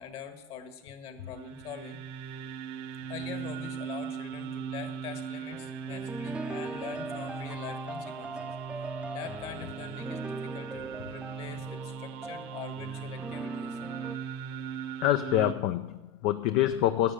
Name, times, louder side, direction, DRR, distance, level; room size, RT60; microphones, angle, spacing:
voice 1, 0.0-2.0 3.1-13.8, left 8 dB, 50° left, 8 dB, 1.7 m, -44 dB
sound 1, 1.2-15.5, right 7 dB, 60° right, 1.0 m, -39 dB
sound 2, 5.5-14.2, right 2 dB, 10° right, 0.6 m, -40 dB
voice 2, 15.0-17.1, left 13 dB, 65° left, 9 dB, 0.6 m, -26 dB
12.0 x 7.4 x 8.3 m, 1.0 s
supercardioid pair, 130°, 13 cm